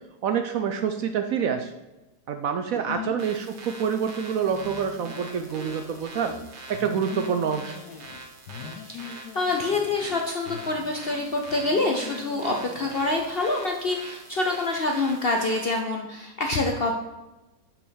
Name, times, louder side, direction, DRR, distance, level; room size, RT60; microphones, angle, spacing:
voice 1, 0.2-1.7 2.3-6.3 6.7-7.7, right 7 dB, 70° right, 7 dB, 0.9 m, -27 dB
voice 2, 2.7-3.1 8.8-16.9, left 2 dB, 50° left, 2 dB, 0.7 m, -26 dB
sound 1, 3.2-15.8, right 3 dB, 85° right, 1.9 m, -44 dB
sound 2, 4.4-6.4 6.7-8.2 8.5-10.2 10.5-13.7, left 8 dB, 80° left, 1.3 m, -42 dB
5.8 x 5.6 x 6.3 m, 1.1 s
omnidirectional pair, 1.8 m